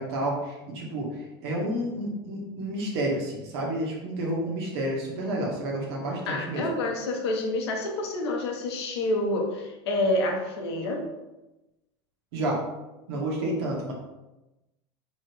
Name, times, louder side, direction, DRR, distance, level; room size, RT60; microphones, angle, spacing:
voice 1, 0.0-6.7 12.3-12.6 13.1-13.9, right 1 dB, 80° right, -1 dB, 1.2 m, -30 dB
voice 2, 6.3-11.1 13.4-13.5, left 1 dB, 90° left, 1 dB, 0.9 m, -28 dB
3.6 x 3.1 x 3.3 m, 1.0 s
supercardioid pair, 115°, 13 cm